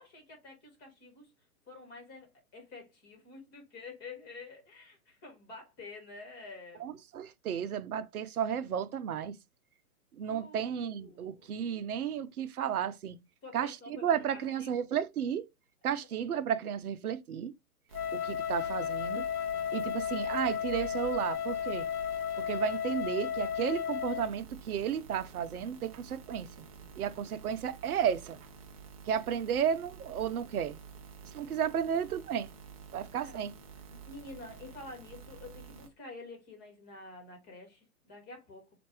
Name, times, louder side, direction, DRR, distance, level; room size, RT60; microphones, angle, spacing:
voice 1, 0.0-1.3 1.7-7.0 10.3-11.5 13.4-14.7 19.5-19.8 26.8-27.1 31.2-31.6 33.1-33.5 33.9-38.6, left 3 dB, 25° left, 1.7 m, -49 dB
voice 2, 6.8-9.4 10.2-13.2 13.5-15.5 15.8-17.5 18.1-19.3 19.7-21.9 22.5-26.6 27.0-28.4 29.1-30.8 31.3-32.5 32.9-33.5, right 8 dB, 70° right, 0.7 m, -33 dB
Wind instrument woodwind instrument, 17.9-24.3, left 9 dB, 75° left, 0.6 m, -34 dB
sound 1, 17.9-35.9, right 6 dB, 25° right, 0.4 m, -50 dB
4.4 x 2.6 x 2.9 m
hypercardioid pair, 130°, 45 cm